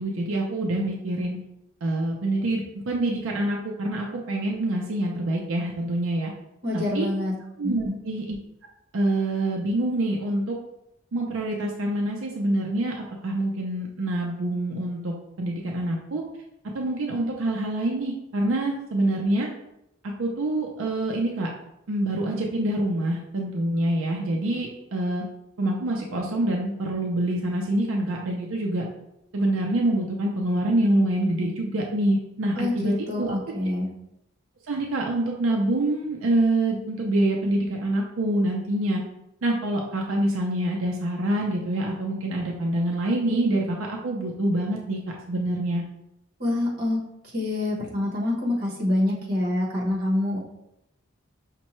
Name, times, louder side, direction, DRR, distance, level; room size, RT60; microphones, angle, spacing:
voice 1, 0.0-1.4 1.8-6.3 6.7-7.1 7.6-8.4 8.9-10.6 11.1-12.9 13.2-16.2 16.7-19.5 20.0-21.5 21.9-25.2 25.6-28.9 29.3-33.3 34.7-39.0 39.4-45.0 45.3-45.8, right 1 dB, 85° right, -1 dB, 0.5 m, -26 dB
voice 2, 6.6-7.3 7.6-8.0 32.6-33.9 46.4-47.0 47.2-50.4, left 1 dB, 45° right, -3 dB, 1.1 m, -26 dB
5.3 x 2.2 x 3.0 m, 0.85 s
head